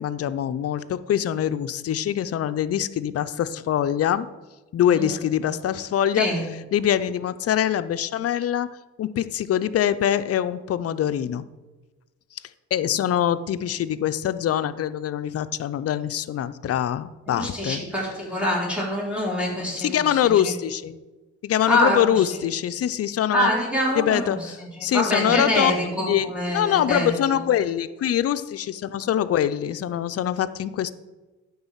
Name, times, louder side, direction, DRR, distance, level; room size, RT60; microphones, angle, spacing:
voice 1, 0.0-4.3 4.7-6.3 6.7-8.7 9.0-11.4 12.7-17.8 19.8-21.0 21.4-23.5 24.0-25.7 26.0-30.9, left 10 dB, 50° left, 12 dB, 0.5 m, -24 dB
voice 2, 17.3-20.5 21.7-22.4 23.3-27.1, equal, 5° right, -3 dB, 3.3 m, -25 dB
9.5 x 3.9 x 7.3 m, 1.2 s
cardioid pair, 90°, 30 cm